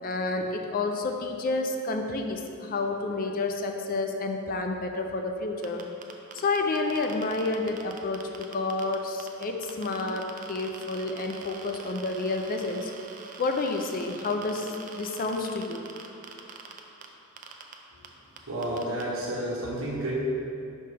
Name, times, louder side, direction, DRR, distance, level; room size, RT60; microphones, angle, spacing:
voice 1, 0.0-5.8 6.3-8.2 8.5-10.2 10.5-12.9 13.4-15.8, left 3 dB, 40° left, 4 dB, 0.4 m, -29 dB
sound 1, 5.6-8.9 9.2-17.1 17.4-17.7 18.0-18.1 18.4-19.0, right 6 dB, 35° right, 0.4 m, -44 dB
voice 2, 18.5-20.1, right 1 dB, 65° right, -5 dB, 1.3 m, -31 dB
5.3 x 3.3 x 5.6 m, 2.6 s
head